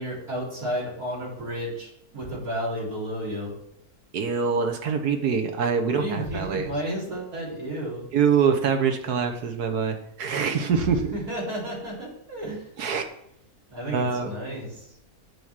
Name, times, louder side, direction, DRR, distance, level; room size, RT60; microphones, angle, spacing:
voice 1, 0.0-3.5 5.9-8.0 11.1-12.7 13.7-14.9, right 1 dB, 70° right, -6 dB, 4.3 m, -32 dB
voice 2, 4.1-6.7 8.1-11.1 12.8-13.0 13.9-14.3, right 6 dB, 85° right, 5 dB, 1.6 m, -24 dB
7.7 x 5.0 x 7.2 m, 0.78 s
omnidirectional pair, 1.6 m